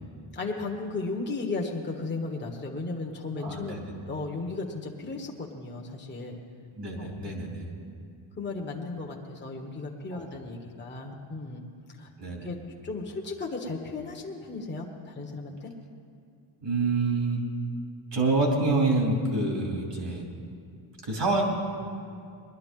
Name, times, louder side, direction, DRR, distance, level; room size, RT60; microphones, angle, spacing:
voice 1, 0.3-3.7 4.1-6.4 7.0-7.1 8.4-11.6 12.0-12.1 12.4-12.6 12.8-15.7, left 3 dB, 20° left, 0 dB, 1.3 m, -35 dB
voice 2, 3.4-3.8 6.8-7.7 10.1-10.4 12.2-12.5 16.6-17.4 18.1-20.3 21.0-21.4, right 3 dB, 55° right, 0 dB, 2.8 m, -27 dB
20.5 x 11.5 x 3.7 m, 2.4 s
cardioid pair, 120°, 49 cm